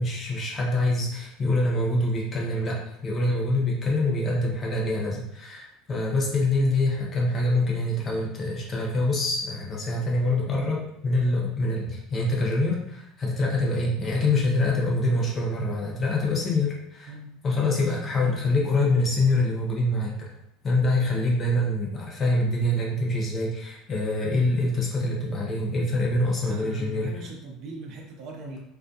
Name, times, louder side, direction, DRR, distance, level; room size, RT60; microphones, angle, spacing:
voice 1, 0.0-17.1 17.4-20.3 20.6-27.1, left 2 dB, 30° left, -3 dB, 0.7 m, -25 dB
voice 2, 26.4-28.6, right 2 dB, 55° right, 1 dB, 0.5 m, -40 dB
2.3 x 2.2 x 2.6 m, 0.78 s
supercardioid pair, 125°, 0 cm